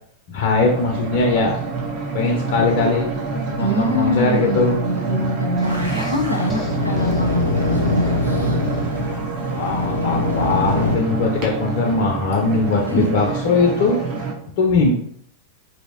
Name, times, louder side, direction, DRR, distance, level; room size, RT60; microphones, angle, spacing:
voice 1, 0.3-1.6 2.1-4.8 9.5-14.3 14.6-14.9, left 3 dB, 50° left, 1 dB, 0.4 m, -20 dB
sound 1, 0.6-14.3, right 4 dB, 40° right, 0.7 m, -27 dB
voice 2, 3.6-7.4 7.7-8.6 12.9-13.0, equal, 90° left, 1 dB, 0.6 m, -24 dB
sound 2, 5.6-9.1, left 2 dB, 10° left, 0.6 m, -35 dB
sound 3, 5.6-11.0, left 2 dB, 90° right, 0.6 m, -23 dB
2.9 x 2.6 x 2.7 m, 0.67 s
figure-of-eight pair, 90°, 0 cm